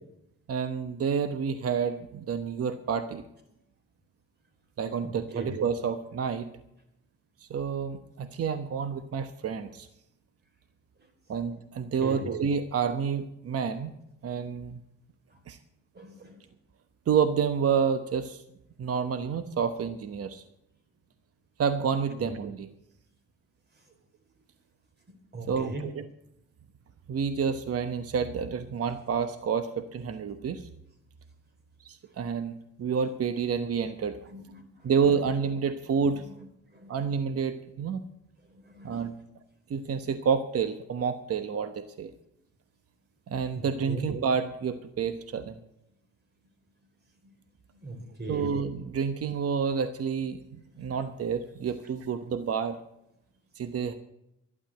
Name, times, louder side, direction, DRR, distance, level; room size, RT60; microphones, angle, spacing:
voice 1, 0.5-3.2 4.8-6.5 7.4-9.9 11.3-13.9 14.2-14.8 15.5-15.6 17.1-18.4 18.8-20.4 21.6-22.7 25.5-26.0 27.1-30.7 31.8-34.2 34.8-36.2 36.9-38.1 38.8-39.1 39.7-42.1 43.3-45.6 48.3-52.8 53.5-53.9, right 6 dB, 50° right, 10 dB, 1.1 m, -29 dB
voice 2, 5.0-5.5 12.0-12.2 15.9-16.4 22.2-22.3 25.3-25.9 34.3-34.6 36.1-36.3 36.7-37.0 38.6-39.0 43.6-44.0 47.8-48.4, right 2 dB, 35° right, 4 dB, 4.1 m, -39 dB
12.0 x 11.0 x 7.7 m, 0.82 s
cardioid pair, 90°, 30 cm